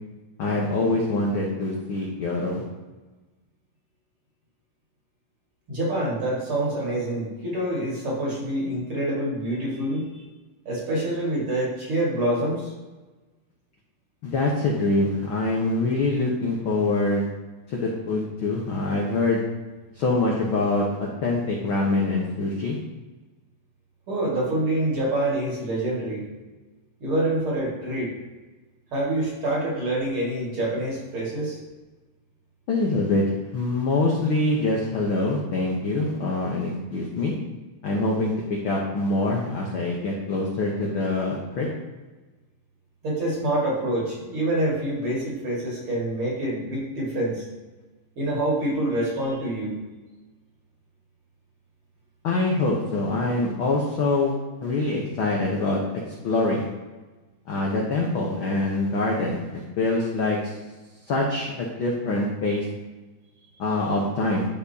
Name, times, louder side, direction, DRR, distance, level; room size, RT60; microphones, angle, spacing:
voice 1, 0.4-2.6 14.2-17.3 17.7-19.4 20.0-20.9 21.2-22.8 32.7-33.2 33.5-37.3 37.8-41.7 52.2-54.3 54.6-55.8 56.2-56.7 57.5-60.5 61.1-62.6 63.6-64.5, left 2 dB, 70° left, -2 dB, 1.2 m, -24 dB
voice 2, 5.7-10.1 10.7-12.7 24.1-26.2 27.0-28.1 28.9-31.6 43.0-47.4 48.2-49.8, right 1 dB, 45° right, -4 dB, 2.6 m, -26 dB
13.0 x 4.4 x 2.8 m, 1.2 s
omnidirectional pair, 3.6 m